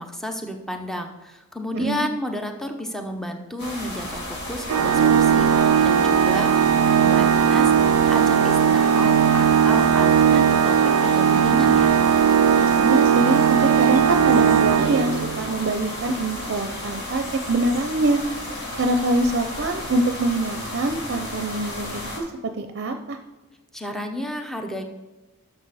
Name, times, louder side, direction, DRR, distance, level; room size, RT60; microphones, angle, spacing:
voice 1, 0.0-4.2 4.5-6.5 7.0-11.9 23.7-24.8, equal, ahead, 4 dB, 0.8 m, -32 dB
voice 2, 1.7-2.1 12.6-18.2 18.8-22.2 22.6-23.2, right 2 dB, 50° right, 6 dB, 0.6 m, -24 dB
sound 1, 3.6-22.2, left 1 dB, 55° left, 2.6 m, -33 dB
Organ, 4.7-15.5, right 8 dB, 90° right, 0.4 m, -18 dB
11.0 x 6.7 x 4.2 m, 1.1 s
head